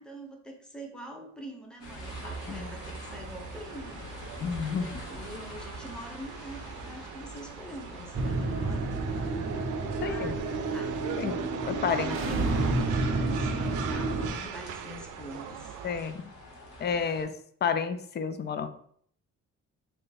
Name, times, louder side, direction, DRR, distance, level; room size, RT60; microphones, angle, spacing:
voice 1, 0.0-9.3 10.0-10.9 11.8-15.8, equal, 5° left, 1 dB, 0.8 m, -45 dB
sound 1, 1.8-17.2, equal, 85° left, 1.2 m, -46 dB
sound 2, 2.0-16.1, right 8 dB, 85° right, 0.5 m, -41 dB
voice 2, 4.4-5.0 9.4-9.5 10.0-10.3 11.2-11.3 11.7-12.2 14.2-14.4 15.8-16.2 16.8-18.7, left 6 dB, 35° left, 10 dB, 0.4 m, -31 dB
sound 3, 8.1-14.3, right 3 dB, 45° right, 0.7 m, -30 dB
3.2 x 2.5 x 4.0 m, 0.63 s
cardioid pair, 90°, 30 cm